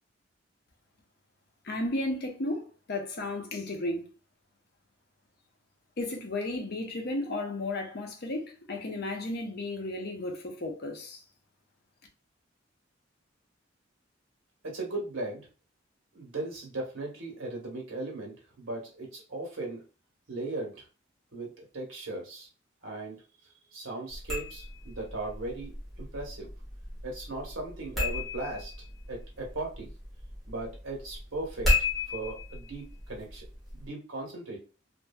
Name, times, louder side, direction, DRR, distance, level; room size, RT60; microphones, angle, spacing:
voice 1, 1.6-4.1 6.0-11.2, left 2 dB, 55° left, 0.7 m, -34 dB
voice 2, 14.6-15.4 16.1-19.8 20.3-20.9 21.3-22.5 22.8-23.2 23.7-26.5 27.0-28.7 29.1-29.9 30.5-31.8 32.1-33.5 33.7-34.6, right 2 dB, 90° right, 1.2 m, -37 dB
sound 1, 24.1-33.9, left 2 dB, ahead, 1.1 m, -35 dB
2.9 x 2.5 x 2.3 m
head